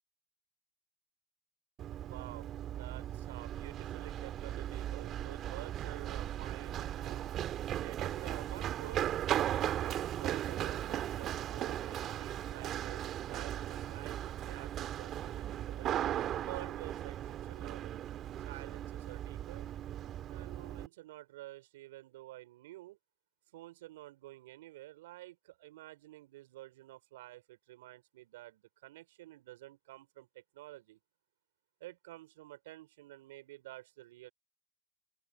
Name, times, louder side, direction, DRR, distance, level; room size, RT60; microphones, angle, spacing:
Run, 1.8-20.9, right 11 dB, 50° right, 1.6 m, -37 dB
voice 1, 1.9-9.0 9.7-16.0 16.3-18.0 18.4-19.7 20.3-23.0 23.5-31.0 31.8-34.3, right 17 dB, 80° right, 4.6 m, -50 dB
open air
hypercardioid pair, 75°, 0 cm